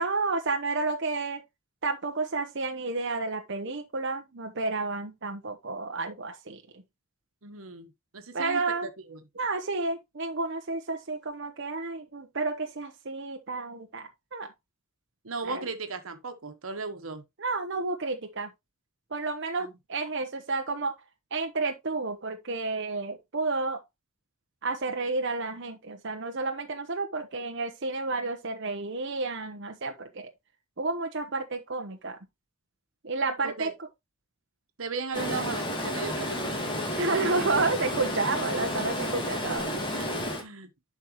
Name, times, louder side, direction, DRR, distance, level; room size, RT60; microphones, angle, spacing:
voice 1, 0.0-1.4 1.8-6.8 8.3-8.9 9.4-14.5 15.4-15.7 17.4-18.5 19.1-21.0 21.3-23.8 24.6-30.3 30.8-32.2 33.0-33.7 37.0-39.7, right 3 dB, 60° right, 1.0 m, -31 dB
voice 2, 7.4-9.2 15.2-17.2 19.6-19.7 33.4-33.7 34.8-36.7 39.4-40.7, right 4 dB, 85° right, 1.4 m, -37 dB
Stream, 35.1-40.4, left 1 dB, 25° left, 2.0 m, -31 dB
11.0 x 4.6 x 3.0 m
head